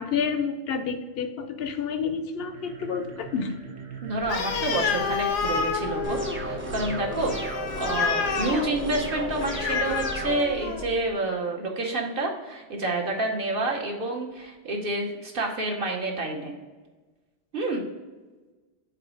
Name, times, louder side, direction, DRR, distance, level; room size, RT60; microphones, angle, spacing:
voice 1, 0.0-3.5, left 6 dB, 65° left, 9 dB, 0.7 m, -29 dB
sound 1, 2.3-8.6, right 5 dB, 75° right, 1.3 m, -43 dB
voice 2, 4.0-16.5 17.5-17.8, right 2 dB, 55° right, 0 dB, 1.0 m, -29 dB
Animal, 4.2-11.0, left 5 dB, 85° left, 1.0 m, -29 dB
sound 2, 6.0-10.4, right 1 dB, 15° right, 0.4 m, -33 dB
4.9 x 4.0 x 4.8 m, 1.3 s
omnidirectional pair, 1.2 m